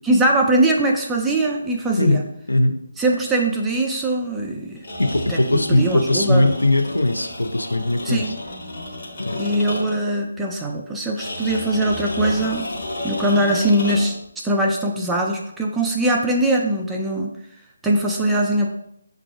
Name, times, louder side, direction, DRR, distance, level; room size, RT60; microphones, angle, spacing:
voice 1, 0.0-2.2 3.0-4.9 5.3-6.5 8.1-8.4 9.4-12.7 13.0-14.1 14.4-17.3 17.8-18.7, right 1 dB, 5° right, -1 dB, 0.3 m, -21 dB
sound 1, 4.8-10.1 11.2-14.3, left 1 dB, 40° left, 1.0 m, -32 dB
voice 2, 5.0-8.3 9.2-9.4, left 1 dB, 75° left, 5 dB, 0.5 m, -19 dB
6.6 x 2.4 x 2.4 m, 0.75 s
figure-of-eight pair, 150°, 0 cm